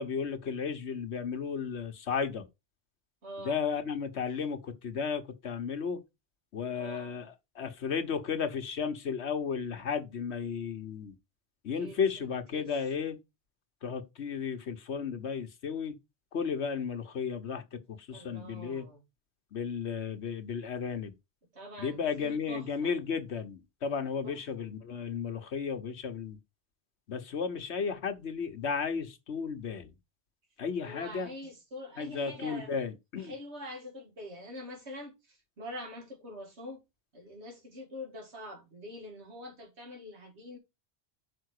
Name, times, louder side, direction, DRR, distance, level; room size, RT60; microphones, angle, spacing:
voice 1, 0.0-2.4 3.4-6.0 6.5-11.1 11.6-13.2 13.8-15.9 16.3-18.9 19.5-21.1 21.8-26.4 27.1-29.9 30.6-31.3 32.0-33.3, left 6 dB, 75° left, 1.3 m, -34 dB
voice 2, 3.2-3.6 6.7-7.3 11.7-12.9 18.1-19.0 21.5-22.9 24.2-24.4 30.8-32.7 33.2-36.8 37.1-40.6, left 1 dB, 75° right, 2.3 m, -45 dB
5.8 x 4.6 x 6.4 m
omnidirectional pair, 1.1 m